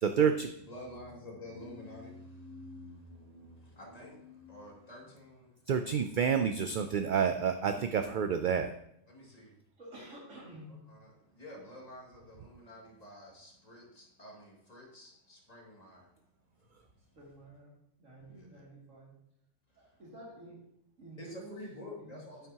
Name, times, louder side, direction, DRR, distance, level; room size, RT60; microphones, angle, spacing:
voice 1, 0.0-0.5 5.7-8.7, right 7 dB, 65° right, 8 dB, 0.5 m, -29 dB
voice 2, 0.7-5.6 5.8-5.9 9.1-9.5 10.9-16.1 18.3-18.6 19.7-19.9 21.2-22.5, left 1 dB, 30° left, -3 dB, 2.4 m, -49 dB
voice 3, 9.8-10.9 17.1-17.7 18.0-19.1 19.8-20.6 21.0-22.5, equal, 85° right, -6 dB, 2.8 m, -51 dB
9.2 x 9.0 x 2.9 m, 0.74 s
omnidirectional pair, 1.3 m